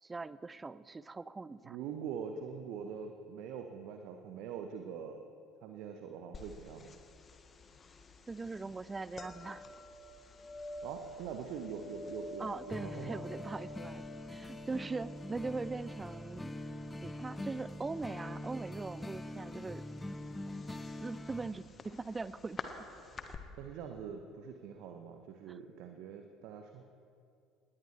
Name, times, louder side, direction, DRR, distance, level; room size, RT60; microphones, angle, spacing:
voice 1, 0.0-1.8 8.3-9.7 12.4-16.6 17.0-19.8 20.7-20.8 21.0-22.6 25.5-25.6, right 3 dB, 20° right, 18 dB, 0.5 m, -41 dB
voice 2, 1.6-5.2 5.6-7.0 10.8-13.2 23.6-26.8, right 7 dB, 55° right, 5 dB, 1.0 m, -43 dB
sound 1, 6.3-23.4, left 3 dB, 30° left, 1.4 m, -50 dB
sound 2, 12.7-21.5, left 1 dB, 10° left, 0.9 m, -44 dB
20.0 x 18.5 x 3.3 m, 2.4 s
figure-of-eight pair, 60°, 0 cm